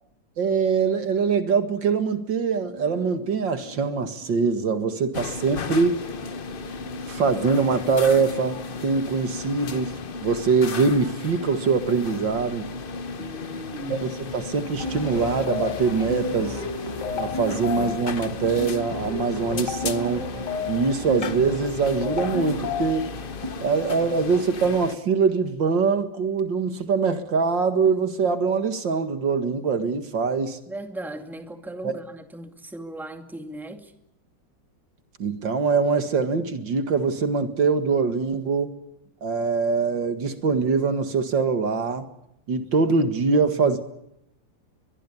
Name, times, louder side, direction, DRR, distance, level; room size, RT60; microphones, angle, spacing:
voice 1, 0.4-6.0 7.1-12.7 13.9-16.6 17.2-20.3 20.7-23.1 23.6-30.6 31.8-32.0 35.2-38.7 39.2-42.1 42.5-43.8, right 5 dB, 70° right, 2.6 m, -23 dB
sound 1, 2.6-13.2, equal, 50° right, 8.8 m, -46 dB
sound 2, 5.1-25.0, left 4 dB, 40° left, 0.8 m, -35 dB
voice 2, 13.2-14.1 30.7-33.9 43.3-43.4, right 1 dB, ahead, 2.2 m, -37 dB
sound 3, 14.8-23.5, left 3 dB, 60° left, 4.2 m, -32 dB
23.0 x 21.5 x 8.5 m
omnidirectional pair, 2.1 m